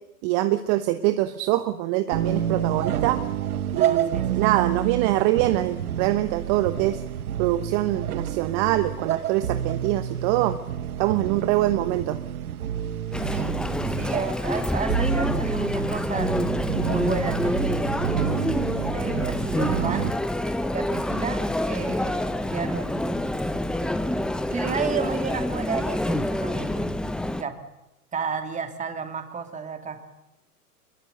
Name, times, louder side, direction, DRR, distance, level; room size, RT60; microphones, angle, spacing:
voice 1, 0.2-3.2 3.7-7.0 7.4-10.6 11.0-12.2, right 15 dB, 40° right, 10 dB, 1.1 m, -24 dB
sound 1, 2.1-20.1, right 10 dB, 70° right, 1.3 m, -29 dB
voice 2, 3.8-4.5 13.2-13.6 13.8-16.3 16.8-18.1 18.8-20.1 20.7-21.4 21.7-23.3 24.5-26.9 27.4-27.5 28.1-30.0, right 6 dB, 15° right, 6 dB, 2.7 m, -32 dB
Chatter, 13.1-27.4, left 1 dB, ahead, 0.7 m, -27 dB
24.0 x 21.5 x 6.9 m, 0.93 s
hypercardioid pair, 110°, 46 cm